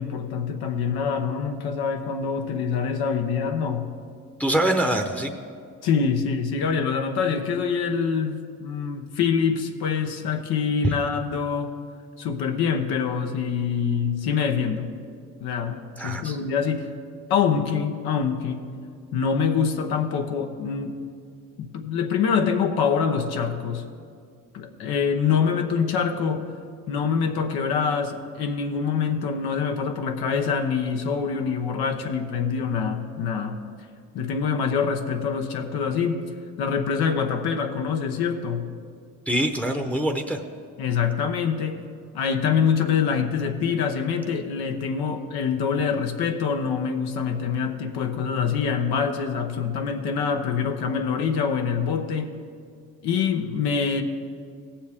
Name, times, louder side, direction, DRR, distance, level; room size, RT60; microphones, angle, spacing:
voice 1, 0.0-3.9 5.8-11.7 12.2-14.9 15.4-16.9 17.3-18.6 19.1-21.0 21.6-23.9 24.5-26.5 26.9-33.6 34.1-36.2 36.6-38.6 40.8-41.8 42.1-52.4 53.0-54.0, left 6 dB, 75° left, 5 dB, 1.0 m, -25 dB
voice 2, 4.4-5.3 10.8-10.9 16.0-16.4 39.3-40.4, right 1 dB, 5° left, 4 dB, 0.9 m, -24 dB
17.0 x 7.2 x 3.6 m, 2.2 s
supercardioid pair, 65°, 38 cm